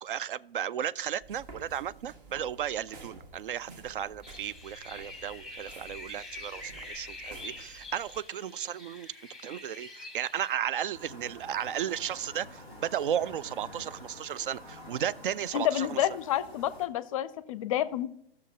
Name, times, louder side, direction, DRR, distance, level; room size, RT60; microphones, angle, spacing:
voice 1, 0.0-9.1 9.4-16.1, right 9 dB, 60° right, 0.4 m, -34 dB
sound 1, 1.2-8.2, right 3 dB, 45° right, 1.6 m, -51 dB
sound 2, 4.2-10.5, left 2 dB, ahead, 1.1 m, -45 dB
sound 3, 10.9-16.9, left 1 dB, 85° right, 2.6 m, -48 dB
voice 2, 15.5-18.1, left 12 dB, 35° left, 0.5 m, -29 dB
15.0 x 6.5 x 2.7 m
figure-of-eight pair, 110°, 31 cm